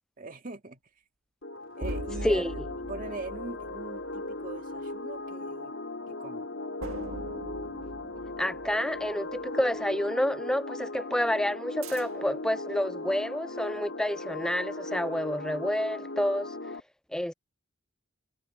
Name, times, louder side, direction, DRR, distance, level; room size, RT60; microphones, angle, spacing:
voice 1, 0.2-0.8 1.8-2.6 2.9-5.7 6.1-6.5, right 3 dB, 40° right, 2.0 m, -41 dB
sound 1, 1.4-16.8, left 2 dB, 65° left, 3.1 m, -38 dB
sound 2, 1.8-4.6 6.8-9.5 11.8-12.4, right 1 dB, 80° right, 1.9 m, -41 dB
voice 2, 8.4-16.5 17.1-17.3, left 1 dB, 5° left, 0.3 m, -29 dB
head